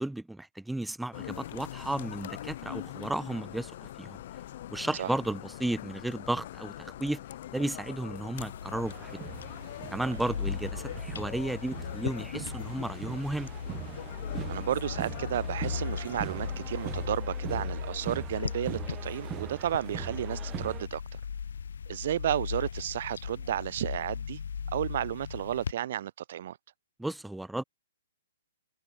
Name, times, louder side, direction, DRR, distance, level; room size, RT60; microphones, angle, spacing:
voice 1, 0.0-4.2 4.7-7.2 7.5-9.2 9.9-13.5 27.0-27.6, right 1 dB, 5° right, 1.7 m, -34 dB
sound 1, 1.1-17.1, left 13 dB, 50° left, 5.3 m, -43 dB
sound 2, 8.4-25.7, left 6 dB, 75° left, 4.2 m, -38 dB
sound 3, 8.9-20.9, right 13 dB, 20° right, 2.2 m, -42 dB
voice 2, 14.5-21.0 21.9-24.4 24.7-26.6, right 11 dB, 55° right, 1.7 m, -32 dB
hypercardioid pair, 145°, 0 cm